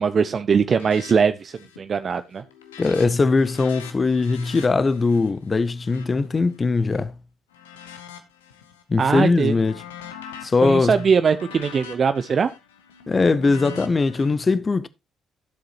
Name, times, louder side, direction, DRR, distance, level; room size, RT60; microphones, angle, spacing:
voice 1, 0.0-2.4 9.0-9.6 10.6-12.5, right 6 dB, 45° right, 0.5 m, -21 dB
sound 1, 0.7-1.1 1.4-1.9 2.2-7.0 7.5-8.8 9.2-14.3, left 8 dB, 80° left, 0.9 m, -43 dB
voice 2, 2.8-7.1 8.9-9.8 10.4-10.9 13.1-14.9, left 3 dB, 30° left, 0.6 m, -20 dB
12.5 x 7.6 x 2.9 m
figure-of-eight pair, 45°, 0 cm